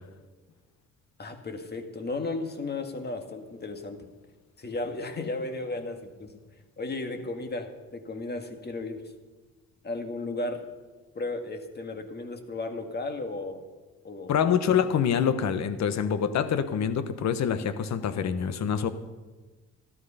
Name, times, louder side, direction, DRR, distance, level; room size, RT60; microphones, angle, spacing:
voice 1, 1.2-4.1 4.6-6.4 6.8-9.0 9.8-10.6 11.2-13.6 14.0-14.6, left 2 dB, 35° left, 6 dB, 1.9 m, -34 dB
voice 2, 14.3-18.9, left 8 dB, 65° left, 11 dB, 1.1 m, -26 dB
13.5 x 12.5 x 5.6 m, 1.2 s
cardioid pair, 90°, 30 cm